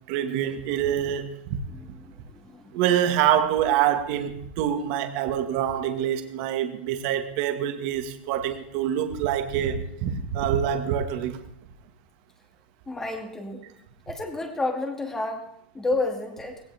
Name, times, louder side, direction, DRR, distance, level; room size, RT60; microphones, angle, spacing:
voice 1, 0.1-1.6 2.7-11.4, right 10 dB, 45° right, 6 dB, 1.9 m, -25 dB
voice 2, 1.7-2.8 12.9-13.7 14.1-15.5 15.7-16.6, left 2 dB, 10° left, 4 dB, 2.3 m, -31 dB
19.5 x 17.5 x 3.6 m, 0.73 s
supercardioid pair, 160°, 6 cm